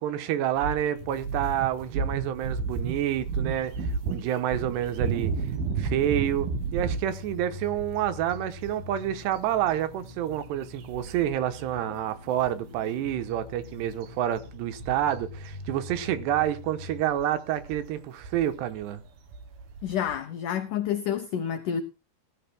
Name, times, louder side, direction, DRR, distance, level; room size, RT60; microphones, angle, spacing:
voice 1, 0.0-3.7 4.1-5.3 5.8-19.0, right 11 dB, 85° right, 3.1 m, -28 dB
sound 1, 0.6-11.6 11.9-12.1 12.4-20.2, right 5 dB, 70° right, 3.0 m, -34 dB
sound 2, 1.0-17.0, left 2 dB, 30° left, 1.0 m, -45 dB
voice 2, 19.8-21.8, left 9 dB, 85° left, 1.8 m, -29 dB
19.5 x 13.5 x 2.2 m
omnidirectional pair, 4.8 m